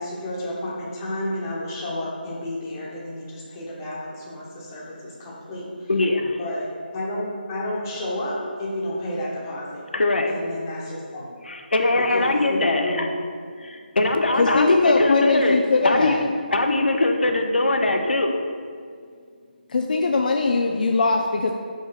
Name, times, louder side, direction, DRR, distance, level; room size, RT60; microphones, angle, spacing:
voice 1, 0.0-5.9 6.4-6.7 6.9-9.8 10.3-11.3 12.1-13.1, left 1 dB, 20° left, -5 dB, 1.2 m, -31 dB
voice 2, 5.9-6.4 9.9-10.3 11.5-13.2 13.6-16.2 16.5-18.4, left 2 dB, 85° left, 4 dB, 0.8 m, -21 dB
voice 3, 14.4-16.3 19.7-21.5, left 3 dB, 55° left, 2 dB, 0.4 m, -21 dB
5.5 x 3.6 x 5.8 m, 2.1 s
figure-of-eight pair, 160°, 6 cm